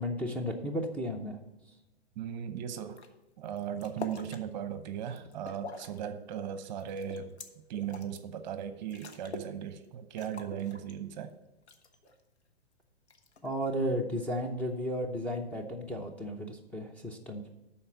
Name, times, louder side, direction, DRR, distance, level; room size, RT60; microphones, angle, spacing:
voice 1, 0.0-1.4 13.4-17.5, equal, 5° left, 0 dB, 0.7 m, -34 dB
voice 2, 2.2-3.0 3.4-7.3 7.7-11.3, right 9 dB, 45° right, 10 dB, 0.9 m, -37 dB
sound 1, 2.9-3.1 3.4-4.4 4.9-6.0 6.3-8.2 8.6-8.7 8.9-9.6 9.8-9.9 10.2-11.3 11.7-12.2 13.1-13.6, left 3 dB, 85° left, 1.2 m, -45 dB
11.5 x 4.3 x 7.0 m, 1.0 s
hypercardioid pair, 120°, 32 cm